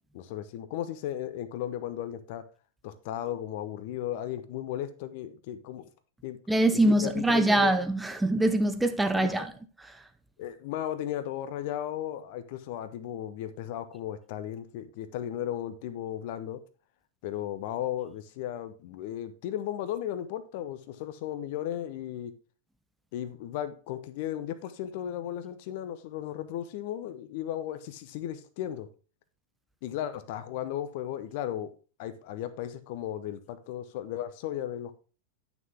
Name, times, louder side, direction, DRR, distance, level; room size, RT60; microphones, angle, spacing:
voice 1, 0.1-2.4 2.8-5.9 6.2-6.4 6.7-7.7 9.1-9.5 10.4-16.6 17.2-22.3 23.1-28.9 29.8-31.7 32.0-35.0, left 11 dB, 50° left, 0.8 m, -35 dB
voice 2, 6.5-9.5, right 1 dB, 5° right, 0.6 m, -23 dB
9.2 x 6.0 x 3.5 m
figure-of-eight pair, 90°, 0 cm